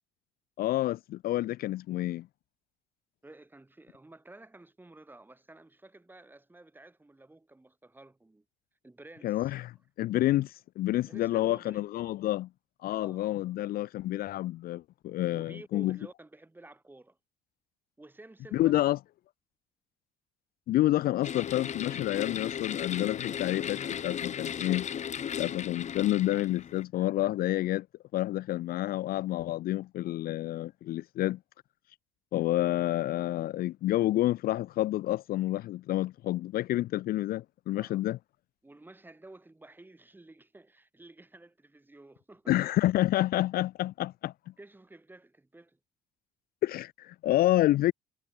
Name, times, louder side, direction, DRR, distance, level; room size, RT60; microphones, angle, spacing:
voice 1, 0.6-2.3 9.2-12.5 12.8-16.0 18.5-19.0 20.7-24.9 25.4-27.9 28.1-31.4 32.3-38.2 42.5-44.3 46.6-47.9, left 15 dB, 60° left, 0.5 m, -29 dB
voice 2, 3.2-8.5 8.8-9.6 10.9-11.9 12.9-13.2 15.3-17.2 18.0-18.9 37.7-38.0 38.6-42.6 44.6-45.8, right 2 dB, 10° right, 7.2 m, -52 dB
sound 1, 21.2-26.8, left 8 dB, 45° left, 1.9 m, -36 dB
cardioid pair, 110°, 17 cm